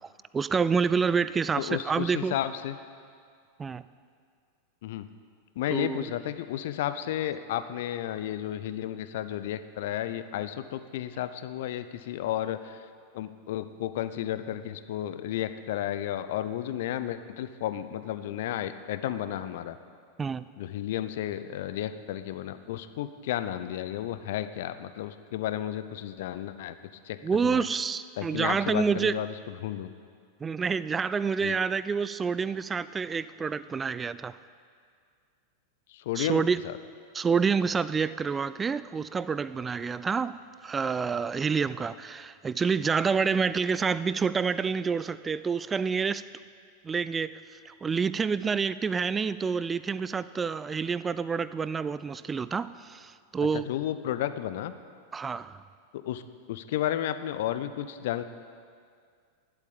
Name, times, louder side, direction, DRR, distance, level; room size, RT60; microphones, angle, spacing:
voice 1, 0.0-2.3 3.6-3.8 5.7-6.1 20.2-20.4 27.2-29.1 30.4-34.3 36.2-36.6 37.1-40.4 40.6-46.2 46.8-47.4 47.7-53.7 55.1-55.6, right 5 dB, 15° right, 16 dB, 0.4 m, -28 dB
voice 2, 1.6-2.8 4.8-5.1 5.6-12.9 13.1-19.8 20.6-26.8 27.0-27.2 27.4-27.7 28.2-29.9 31.4-31.6 35.9-36.8 53.5-54.7 55.9-56.2 56.5-58.2, left 12 dB, 55° left, 12 dB, 0.6 m, -32 dB
11.5 x 8.2 x 8.7 m, 2.1 s
figure-of-eight pair, 90°, 0 cm